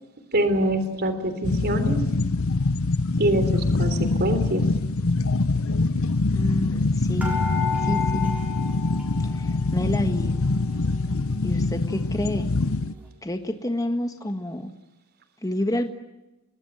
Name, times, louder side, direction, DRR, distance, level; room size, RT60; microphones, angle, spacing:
voice 1, 0.3-2.0 3.2-4.6, right 1 dB, 45° right, 10 dB, 3.4 m, -24 dB
sound 1, 1.4-12.9, left 3 dB, 65° left, 0.8 m, -24 dB
voice 2, 6.3-7.5 7.8-8.3 9.3-10.4 11.4-12.5 13.2-14.7 15.4-15.9, left 1 dB, 15° left, 6 dB, 1.5 m, -28 dB
sound 2, 7.2-9.7 10.0-11.0 11.5-11.6 11.9-12.0, left 6 dB, 5° right, 6.5 m, -32 dB
29.5 x 20.5 x 9.2 m, 1.0 s
head